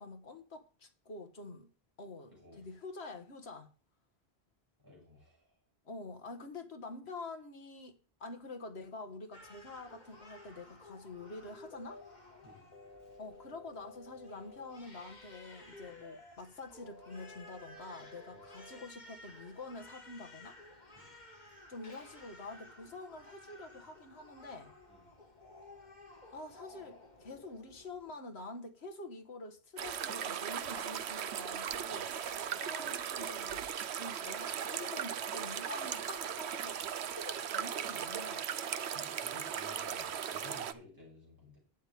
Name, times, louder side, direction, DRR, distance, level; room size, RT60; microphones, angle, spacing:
voice 1, 0.0-1.7 2.0-3.7 5.9-12.0 13.2-20.6 21.7-24.7 26.3-32.1 32.6-33.7 34.0-38.5, left 2 dB, 85° left, 1.8 m, -47 dB
voice 2, 2.3-2.7 4.8-5.5 12.4-12.7 18.3-18.5 21.0-21.1 24.9-25.1 31.9-32.1 38.9-41.6, left 2 dB, 20° right, 6.9 m, -56 dB
Crying sobbing, 9.3-28.1, left 2 dB, 45° left, 2.3 m, -56 dB
sound 1, 11.6-12.2 12.7-14.7 15.7-16.3 16.8-18.8, left 2 dB, 60° left, 1.5 m, -54 dB
sound 2, 29.8-40.7, right 8 dB, 90° right, 1.0 m, -38 dB
11.5 x 9.2 x 3.6 m
omnidirectional pair, 1.1 m